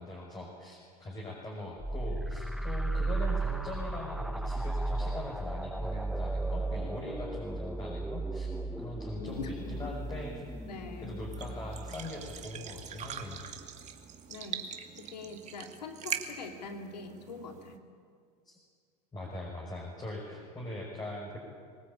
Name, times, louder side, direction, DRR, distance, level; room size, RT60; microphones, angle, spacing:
voice 1, 0.0-8.5 8.8-10.4 11.0-13.4 18.5-18.6 19.1-21.4, left 1 dB, 20° left, -2 dB, 5.7 m, -41 dB
sound 1, 1.8-13.2, right 2 dB, ahead, 0.8 m, -35 dB
voice 2, 9.1-10.0 10.6-11.3 14.3-14.7 15.0-17.9, left 4 dB, 85° left, 5 dB, 2.7 m, -43 dB
sound 2, 9.2-17.8, right 8 dB, 35° right, 2.4 m, -43 dB
23.5 x 19.0 x 8.7 m, 2.1 s
hypercardioid pair, 90°, 20 cm